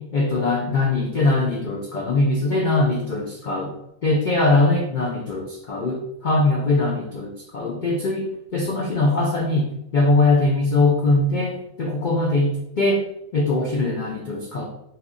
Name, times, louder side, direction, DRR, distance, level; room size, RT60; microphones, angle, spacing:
voice 1, 0.0-3.7 4.0-8.3 8.5-9.7 9.9-13.1 13.3-14.7, left 2 dB, 85° left, -1 dB, 0.4 m, -21 dB
2.8 x 2.5 x 3.7 m, 0.80 s
omnidirectional pair, 1.5 m